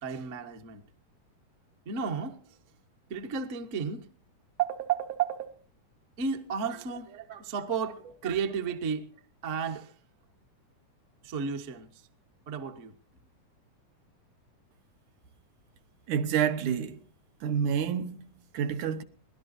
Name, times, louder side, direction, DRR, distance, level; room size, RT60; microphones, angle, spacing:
voice 1, 0.0-0.8 1.8-2.6 3.1-4.1 4.6-5.6 6.2-9.1 9.4-9.9 11.2-12.0 12.5-12.9, right 6 dB, 60° right, 0.8 m, -33 dB
voice 2, 16.1-17.0 17.4-19.0, right 8 dB, 75° right, 2.4 m, -29 dB
23.0 x 17.5 x 2.7 m
omnidirectional pair, 3.6 m